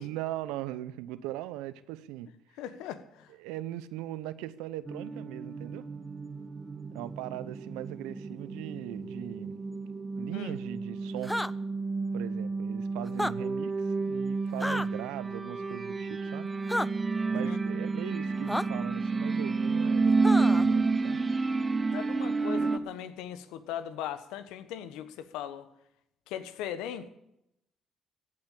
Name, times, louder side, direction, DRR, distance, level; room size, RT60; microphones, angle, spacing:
voice 1, 0.0-2.3 3.4-5.9 6.9-9.6 10.2-11.3 12.1-16.5 17.3-21.2, right 14 dB, 85° right, 16 dB, 0.7 m, -39 dB
voice 2, 2.6-3.3 10.3-10.5 17.3-17.8 21.9-25.7 26.3-27.1, left 10 dB, 80° left, 12 dB, 1.2 m, -39 dB
sound 1, 4.9-22.8, right 3 dB, 30° right, 1.3 m, -30 dB
sound 2, 11.2-11.5 13.1-13.3 14.6-14.9 16.7-16.9 18.5-18.6 20.2-20.7, left 1 dB, 5° left, 0.6 m, -30 dB
15.0 x 8.6 x 8.4 m, 0.82 s
hypercardioid pair, 60°, 0 cm